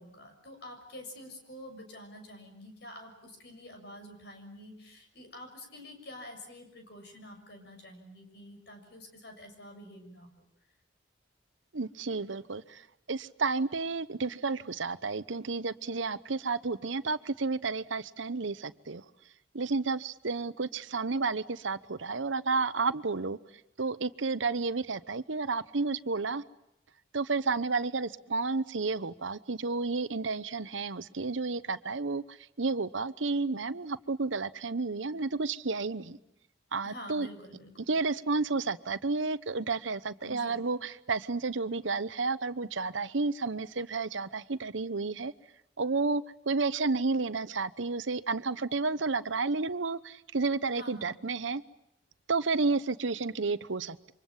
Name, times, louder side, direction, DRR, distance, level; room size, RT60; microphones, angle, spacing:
voice 1, 0.0-10.4 36.8-38.0 40.2-40.6 50.7-51.2, left 1 dB, 60° left, 5 dB, 6.9 m, -48 dB
voice 2, 11.7-12.8 13.1-19.0 19.5-23.4 23.8-26.4 27.1-36.2 36.7-37.3 37.9-45.3 45.8-51.6 52.3-54.1, right 4 dB, 80° right, 15 dB, 0.9 m, -31 dB
28.5 x 25.5 x 7.3 m, 0.82 s
head